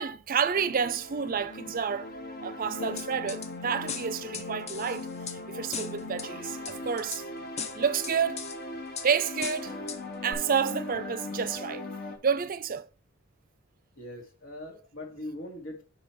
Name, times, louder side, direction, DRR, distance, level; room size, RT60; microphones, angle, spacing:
voice 1, 0.0-2.1 2.4-7.2 7.6-8.4 9.0-9.7 10.2-11.8 12.2-12.9, right 6 dB, 45° right, 0.5 m, -29 dB
sound 1, 0.5-12.2, left 2 dB, 55° left, 1.2 m, -39 dB
sound 2, 3.0-3.5 3.9-5.4 5.7-6.3 6.7-7.2 7.6-8.6 9.0-9.1 9.4-10.0 10.3-10.4, left 6 dB, 35° left, 0.7 m, -37 dB
voice 2, 14.0-15.8, left 1 dB, 80° left, 2.1 m, -41 dB
5.3 x 5.0 x 4.5 m
head